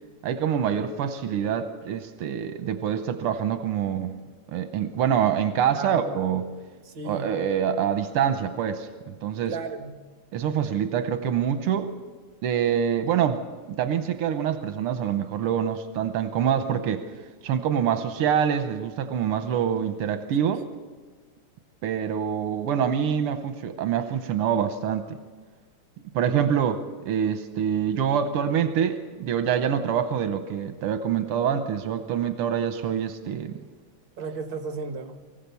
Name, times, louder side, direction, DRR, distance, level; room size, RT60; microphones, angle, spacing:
voice 1, 0.2-4.2 4.5-6.5 7.0-9.6 10.3-11.9 12.4-13.4 13.8-17.1 17.4-20.7 21.8-25.2 26.1-33.6, right 8 dB, 85° right, 9 dB, 1.8 m, -25 dB
voice 2, 6.9-7.3 9.4-9.9 34.2-35.1, right 4 dB, 60° right, 6 dB, 2.3 m, -34 dB
24.0 x 15.5 x 6.9 m, 1.5 s
omnidirectional pair, 2.4 m